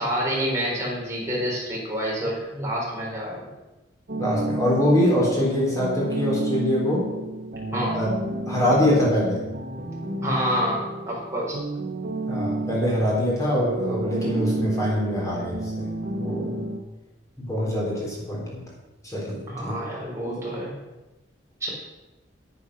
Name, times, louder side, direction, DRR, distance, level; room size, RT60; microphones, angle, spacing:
voice 1, 0.0-3.5 7.7-8.0 10.2-11.6 19.5-20.8 21.6-21.7, equal, 15° right, -5 dB, 4.3 m, -28 dB
sound 1, 4.1-16.8, right 2 dB, 55° right, 1.1 m, -31 dB
voice 2, 4.2-7.1 7.9-8.1 8.5-9.5 12.3-15.9 16.1-16.6 17.4-18.6 19.0-19.8 20.3-20.4, left 1 dB, 20° left, -5 dB, 3.6 m, -24 dB
9.9 x 8.5 x 6.3 m, 1.0 s
head